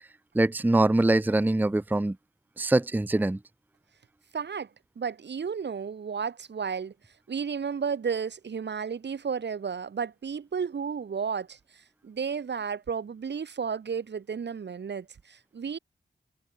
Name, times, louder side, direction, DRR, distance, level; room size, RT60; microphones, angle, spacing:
voice 1, 0.3-2.2 2.6-3.4, right 2 dB, 10° right, 0.5 m, -23 dB
voice 2, 4.3-4.7 5.0-6.9 7.3-15.8, right 6 dB, 85° right, 3.6 m, -33 dB
cardioid pair, 55°, 18 cm